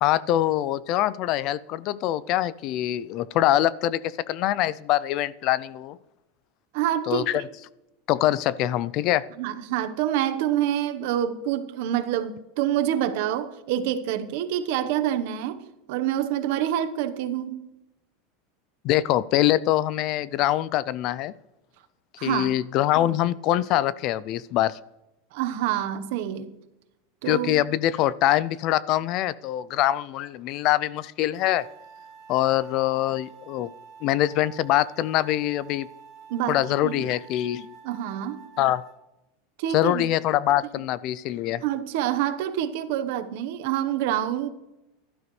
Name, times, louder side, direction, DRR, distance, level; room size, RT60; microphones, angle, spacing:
voice 1, 0.0-6.0 7.1-7.4 8.1-9.2 18.8-21.3 22.2-24.8 27.3-31.6 32.3-33.7 34.0-35.9 36.5-37.7 38.6-38.8 39.7-41.6, left 13 dB, 40° left, 0.4 m, -24 dB
voice 2, 6.7-7.4 9.4-17.7 22.2-22.5 25.3-26.5 27.2-27.7 36.3-37.1 37.8-38.4 39.6-40.1 41.6-44.5, right 11 dB, 55° right, 1.0 m, -27 dB
sound 1, 31.3-39.0, right 6 dB, 30° right, 4.9 m, -48 dB
16.5 x 12.5 x 3.2 m
supercardioid pair, 165°, 0 cm